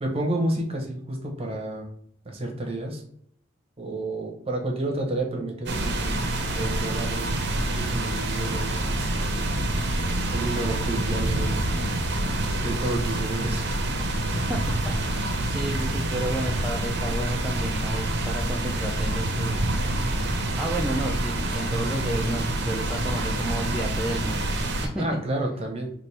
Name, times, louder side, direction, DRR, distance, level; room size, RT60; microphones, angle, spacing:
voice 1, 0.0-1.9 2.2-3.0 3.8-6.2 6.5-7.5 7.7-9.5 10.3-11.7 12.6-13.8 25.0-25.9, right 1 dB, 30° right, 1 dB, 0.8 m, -30 dB
sound 1, 5.7-24.9, right 1 dB, 60° right, 0.6 m, -27 dB
voice 2, 14.5-19.6 20.5-24.5 24.8-25.2, right 1 dB, 5° right, -4 dB, 0.4 m, -32 dB
4.1 x 2.5 x 3.2 m, 0.67 s
head